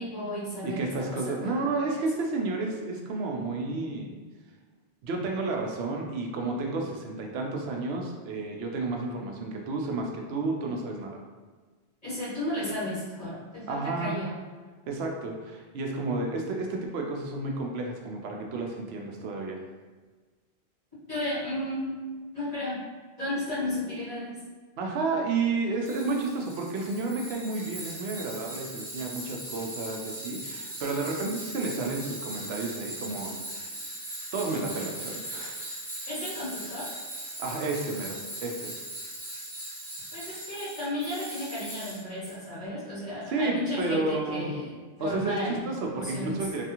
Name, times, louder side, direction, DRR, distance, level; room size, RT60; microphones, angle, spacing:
voice 1, 0.0-0.8 1.1-1.5 12.0-14.3 21.1-22.0 22.3-22.8 23.2-24.4 36.1-36.9 40.1-44.7 45.0-45.6 45.9-46.4, left 1 dB, 35° left, -13 dB, 1.7 m, -33 dB
voice 2, 0.6-4.1 5.0-11.2 13.7-14.2 14.9-19.6 24.8-33.7 34.3-35.6 37.4-38.7 40.2-40.4 43.3-44.5 45.0-46.7, right 3 dB, 75° right, 1 dB, 0.8 m, -31 dB
Tools, 25.8-42.3, right 1 dB, 20° right, 1.3 m, -39 dB
3.4 x 2.4 x 2.8 m, 1.4 s
omnidirectional pair, 1.1 m